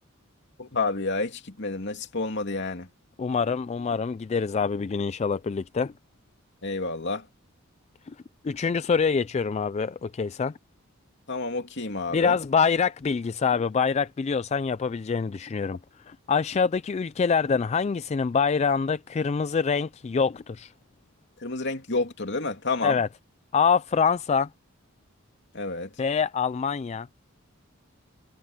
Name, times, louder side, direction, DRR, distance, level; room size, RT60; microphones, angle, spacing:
voice 1, 0.6-2.9 6.6-7.2 11.3-12.4 21.4-23.0 25.5-25.9, left 3 dB, 55° left, 2.8 m, -29 dB
voice 2, 3.2-5.9 8.4-10.5 12.1-15.8 16.1-20.7 22.8-23.1 23.5-24.5 26.0-27.1, left 5 dB, 30° left, 0.3 m, -25 dB
head